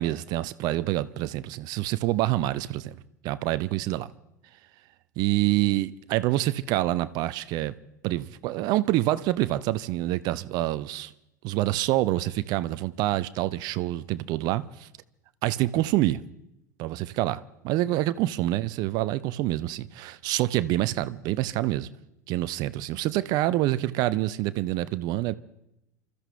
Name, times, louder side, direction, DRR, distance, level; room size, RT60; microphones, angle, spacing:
voice 1, 0.0-2.9 3.2-4.1 5.2-7.7 8.0-11.1 11.4-14.9 15.4-16.2 16.8-21.9 22.3-25.3, right 16 dB, 45° right, 0.6 m, -26 dB
30.0 x 13.5 x 3.4 m
figure-of-eight pair, 80°, 10 cm